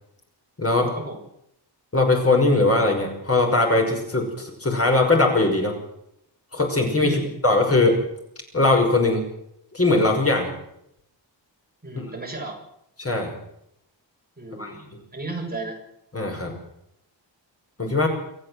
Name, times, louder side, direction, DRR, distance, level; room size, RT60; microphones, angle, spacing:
voice 1, 0.6-0.9 1.9-5.7 6.5-8.0 8.5-9.2 9.7-10.5 11.9-12.0 13.0-13.3 14.6-14.7 16.1-16.6 17.8-18.1, left 2 dB, 30° left, 2 dB, 5.7 m, -20 dB
voice 2, 7.0-7.3 11.8-12.6 14.4-15.8, right 2 dB, 20° right, 0 dB, 6.6 m, -34 dB
27.0 x 14.0 x 7.8 m, 0.76 s
wide cardioid pair, 165°, 44 cm